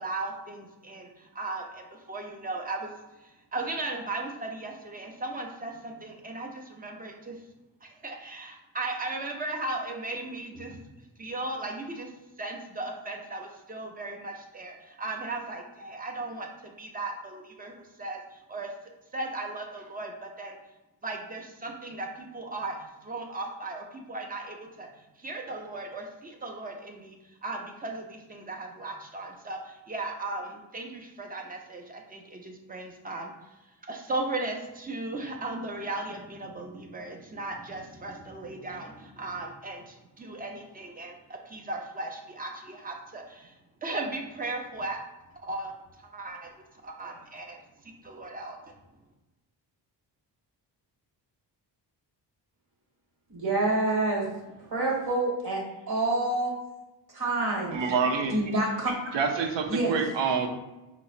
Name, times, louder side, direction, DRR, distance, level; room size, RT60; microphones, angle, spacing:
voice 1, 0.0-7.3 7.8-10.8 11.2-18.7 19.1-20.6 21.0-24.9 25.2-43.6 43.8-45.0 45.4-45.7 46.0-48.7, right 2 dB, 20° right, 2 dB, 0.5 m, -37 dB
voice 2, 53.3-54.3 54.7-56.5 57.1-57.8 58.3-59.0 59.7-59.9, right 2 dB, 60° right, -3 dB, 1.2 m, -27 dB
voice 3, 57.7-58.3 59.1-60.5, right 5 dB, 85° right, 5 dB, 0.6 m, -26 dB
5.2 x 2.0 x 2.4 m, 1.0 s
cardioid pair, 95°, 43 cm